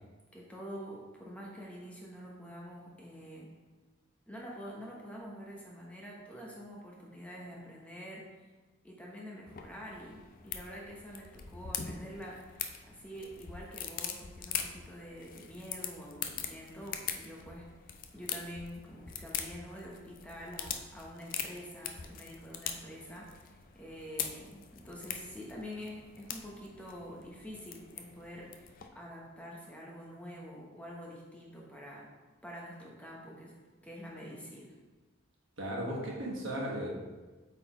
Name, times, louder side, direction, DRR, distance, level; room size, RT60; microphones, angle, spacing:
voice 1, 0.3-3.5 4.3-8.5 8.8-32.1 32.4-33.5 33.8-34.8, equal, 5° left, -3 dB, 0.8 m, -47 dB
sound 1, 9.5-28.9, left 8 dB, 40° left, 0.4 m, -42 dB
voice 2, 35.6-36.9, right 1 dB, 65° right, -3 dB, 1.4 m, -36 dB
8.1 x 4.1 x 3.0 m, 1.3 s
head